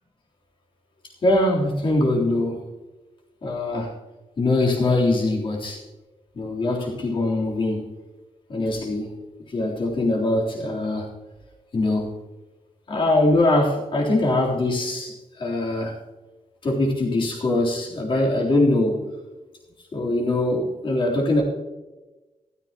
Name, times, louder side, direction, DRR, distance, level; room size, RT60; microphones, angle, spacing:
voice 1, 1.2-2.6 3.4-3.9 4.4-5.8 6.3-7.9 8.5-9.1 9.5-11.1 11.7-12.1 12.9-15.9 16.6-19.1 19.9-21.4, left 2 dB, 45° left, -3 dB, 3.5 m, -22 dB
15.0 x 13.5 x 3.0 m, 1.1 s
wide cardioid pair, 145°, 12 cm